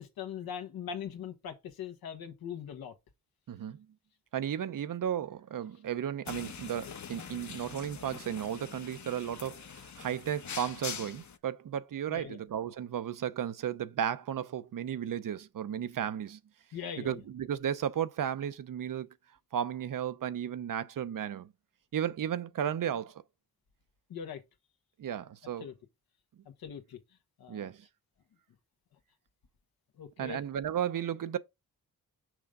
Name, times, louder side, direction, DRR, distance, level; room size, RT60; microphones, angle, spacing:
voice 1, 0.0-2.9 12.1-12.4 16.7-17.2 24.1-24.4 25.6-25.7 26.6-27.0 27.4-27.7 30.0-30.4, left 8 dB, 90° left, 1.4 m, -41 dB
voice 2, 3.5-3.9 4.3-16.4 17.0-19.1 19.5-21.5 21.9-23.2 25.0-25.7 27.5-27.8 30.2-31.4, right 9 dB, 65° right, 0.8 m, -34 dB
sound 1, 6.3-11.4, left 7 dB, 55° left, 1.0 m, -44 dB
6.3 x 5.1 x 3.7 m
cardioid pair, 55°, 35 cm